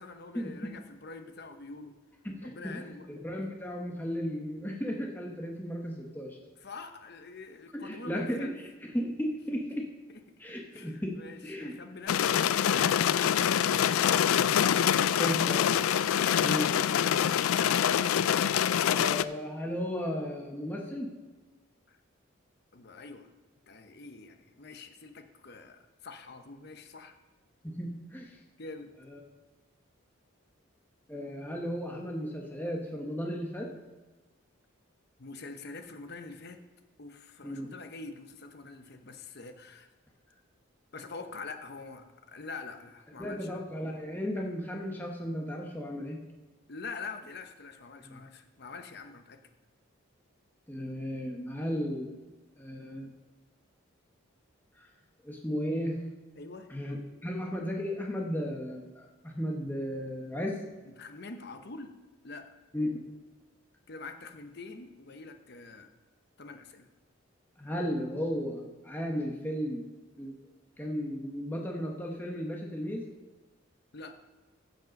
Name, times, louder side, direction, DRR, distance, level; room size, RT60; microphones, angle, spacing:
voice 1, 0.0-1.9 2.4-3.1 6.6-8.5 10.7-14.5 21.9-22.0 22.7-23.3 23.7-27.2 28.6-28.9 35.2-36.6 37.0-39.9 40.9-43.6 46.7-49.4 56.4-56.7 60.9-62.0 62.2-62.5 63.9-65.9 66.4-66.9 73.9-74.2, left 3 dB, 50° left, 8 dB, 0.8 m, -45 dB
voice 2, 2.2-6.4 7.7-8.5 8.8-9.9 10.4-11.7 15.2-15.6 16.4-16.7 18.8-21.1 27.6-28.4 29.0-29.2 31.1-33.7 37.4-37.7 43.2-46.2 48.0-48.2 50.7-52.1 52.6-53.1 54.8-54.9 55.2-56.0 56.7-60.6 62.7-62.9 67.6-69.8 70.2-70.4 70.8-73.0, equal, 10° left, 0 dB, 1.0 m, -35 dB
Rain on a car roof, 12.1-19.2, left 9 dB, 85° left, 0.3 m, -25 dB
15.0 x 5.3 x 5.2 m, 1.2 s
head